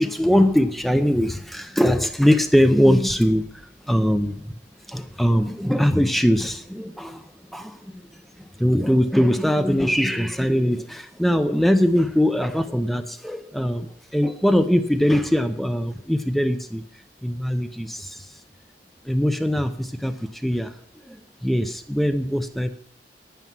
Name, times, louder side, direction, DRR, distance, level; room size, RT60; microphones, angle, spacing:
voice 1, 0.0-4.4 4.9-7.2 7.5-8.0 8.6-16.8 17.2-18.3 19.0-20.7 21.1-22.7, equal, ahead, 8 dB, 0.6 m, -21 dB
10.5 x 9.2 x 6.0 m, 0.63 s
head